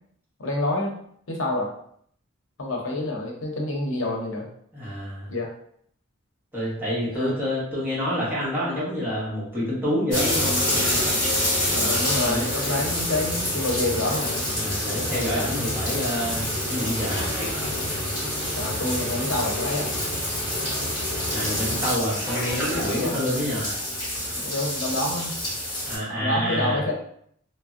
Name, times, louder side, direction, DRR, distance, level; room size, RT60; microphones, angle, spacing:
voice 1, 0.4-0.9 1.3-1.7 2.6-4.4 5.3-5.5 7.1-7.3 11.6-14.4 18.6-19.9 21.6-21.8 22.9-23.2 24.3-25.3 26.1-26.9, left 2 dB, 70° left, -1 dB, 0.7 m, -28 dB
voice 2, 4.7-5.3 6.5-10.6 12.2-12.8 14.6-17.3 21.3-23.7 25.8-26.8, equal, 10° right, -9 dB, 1.0 m, -28 dB
sound 1, 10.1-26.0, left 1 dB, 20° left, 1.4 m, -27 dB
3.3 x 2.0 x 2.5 m, 0.66 s
head